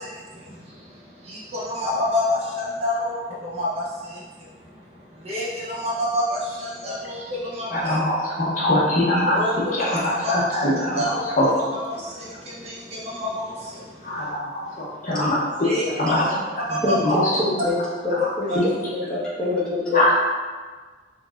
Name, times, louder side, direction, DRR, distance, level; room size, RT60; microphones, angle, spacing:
voice 1, 0.0-8.0 9.3-10.6 10.9-14.3 15.6-16.3 16.7-17.0, left 1 dB, 35° right, -6 dB, 0.6 m, -29 dB
voice 2, 7.7-11.0 11.3-11.5 14.0-15.4 16.0-16.4 16.7-16.8 17.0-17.2 19.9-20.1, left 1 dB, 45° left, -5 dB, 0.7 m, -22 dB
voice 3, 16.8-17.8 18.0-20.1, left 2 dB, 5° left, -11 dB, 1.1 m, -25 dB
3.9 x 3.4 x 2.4 m, 1.4 s
head